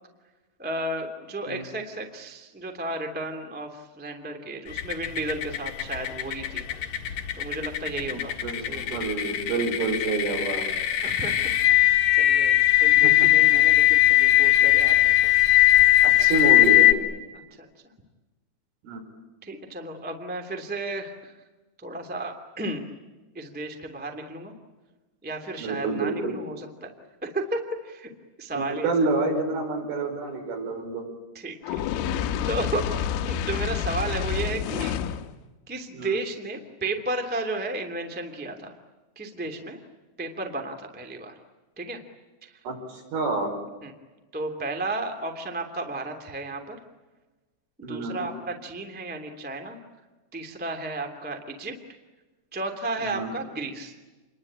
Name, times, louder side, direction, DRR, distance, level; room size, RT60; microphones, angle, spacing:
voice 1, 0.6-6.6 7.1-8.3 8.7-9.0 11.0-11.6 12.1-15.3 17.5-17.7 19.4-21.3 21.8-22.8 23.3-24.5 25.2-26.9 27.2-28.1 28.4-28.9 31.3-31.8 32.4-35.0 35.7-38.7 39.1-39.8 40.2-41.3 41.7-42.0 42.4-42.6 43.8-43.9 44.3-46.8 47.9-49.8 50.3-51.8 52.5-53.9, right 2 dB, 5° right, 4 dB, 0.9 m, -33 dB
sound 1, 4.8-16.9, left 15 dB, 60° left, 2.5 m, -20 dB
voice 2, 8.1-10.7 16.0-17.0 18.8-19.0 25.6-26.4 28.5-31.1 35.9-36.2 42.7-43.5 47.8-48.3 53.0-53.3, right 3 dB, 70° right, 3 dB, 7.8 m, -28 dB
Fire, 31.6-35.3, left 8 dB, 80° left, 3.6 m, -28 dB
28.5 x 22.0 x 8.8 m, 1.2 s
omnidirectional pair, 5.9 m